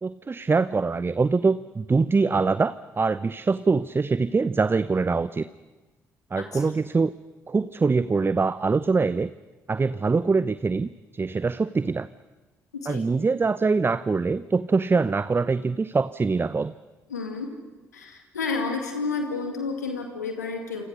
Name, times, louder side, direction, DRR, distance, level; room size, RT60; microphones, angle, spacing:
voice 1, 0.0-5.5 6.3-7.1 7.5-9.3 9.7-12.1 12.9-16.7, right 4 dB, 25° right, 15 dB, 0.8 m, -23 dB
voice 2, 12.7-13.0 17.1-17.5 17.9-20.8, left 4 dB, 85° left, 3 dB, 2.3 m, -30 dB
27.5 x 27.0 x 6.5 m, 1.2 s
figure-of-eight pair, 45°, 9 cm